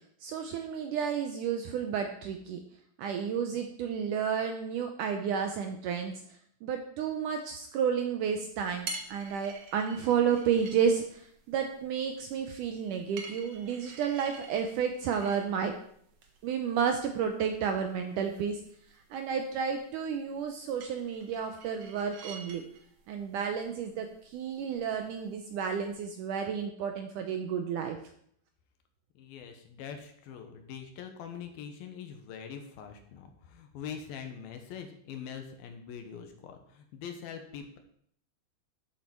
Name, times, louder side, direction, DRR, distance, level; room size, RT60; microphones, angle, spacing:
voice 1, 0.2-2.6 3.0-6.1 6.6-15.7 16.4-18.6 19.1-22.6 23.1-28.0, right 7 dB, 75° right, 5 dB, 1.9 m, -31 dB
sound 1, 8.5-26.0, right 4 dB, 60° right, 1.8 m, -49 dB
voice 2, 29.2-37.8, left 7 dB, 75° left, 5 dB, 2.9 m, -43 dB
12.5 x 7.5 x 4.5 m, 0.65 s
omnidirectional pair, 4.4 m